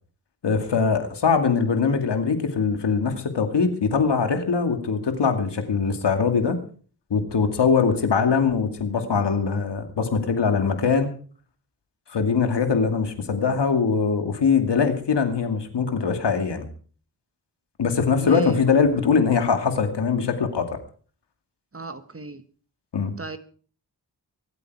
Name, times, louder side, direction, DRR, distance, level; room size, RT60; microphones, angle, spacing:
voice 1, 0.4-6.6 7.1-11.1 12.1-16.7 17.8-20.6 22.9-23.1, left 5 dB, 90° left, 7 dB, 2.4 m, -22 dB
voice 2, 18.2-18.6 21.7-22.4 23.2-23.4, right 3 dB, 35° right, 10 dB, 1.5 m, -35 dB
24.0 x 9.0 x 4.8 m, 0.42 s
cardioid pair, 55°, 40 cm